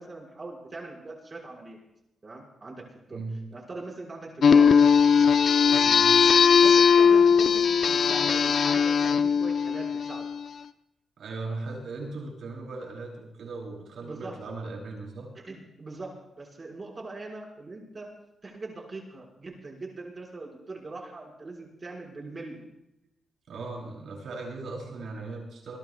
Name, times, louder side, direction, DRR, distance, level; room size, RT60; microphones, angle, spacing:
voice 1, 0.0-1.8 2.2-3.2 3.5-4.9 6.2-10.3 14.0-14.3 15.3-18.1 18.4-22.6, right 2 dB, 30° right, -2 dB, 5.0 m, -41 dB
sound 1, 4.4-10.4, left 6 dB, 50° left, 0.6 m, -19 dB
voice 2, 5.8-6.1 11.2-15.3 23.5-25.8, right 3 dB, 60° right, -1 dB, 8.0 m, -38 dB
27.5 x 21.5 x 2.3 m, 0.85 s
wide cardioid pair, 150°, 0 cm